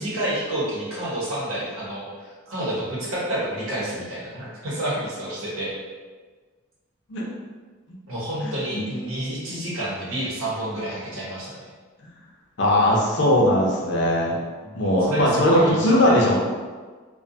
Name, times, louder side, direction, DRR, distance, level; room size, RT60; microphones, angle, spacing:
voice 1, 0.0-5.7 8.1-11.7 14.6-16.1, right 1 dB, 80° right, -7 dB, 0.9 m, -29 dB
voice 2, 8.4-8.8 12.0-12.1 12.6-14.4 14.7-16.3, left 1 dB, 55° left, -2 dB, 0.5 m, -19 dB
2.5 x 2.2 x 2.6 m, 1.4 s
head